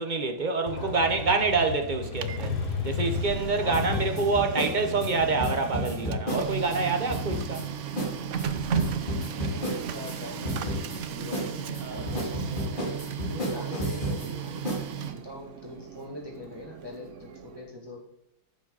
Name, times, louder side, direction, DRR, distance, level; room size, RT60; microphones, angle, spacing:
voice 1, 0.0-2.6 2.8-7.6 11.8-12.1, right 3 dB, 45° right, 0.6 m, -27 dB
Motorcycle, 0.7-8.3, left 5 dB, 55° left, 2.0 m, -35 dB
voice 2, 0.7-1.3 3.6-4.7 9.3-17.1 17.4-18.0, left 1 dB, 10° right, 1.9 m, -43 dB
Printer, 1.9-17.7, right 7 dB, 85° right, 0.6 m, -36 dB
sound 1, 3.7-6.8 7.1-7.7 8.0-8.1 8.4-10.2 10.5-11.0 11.3-14.3 14.7-14.8, equal, 25° left, 2.6 m, -32 dB
14.0 x 7.5 x 4.0 m
omnidirectional pair, 2.2 m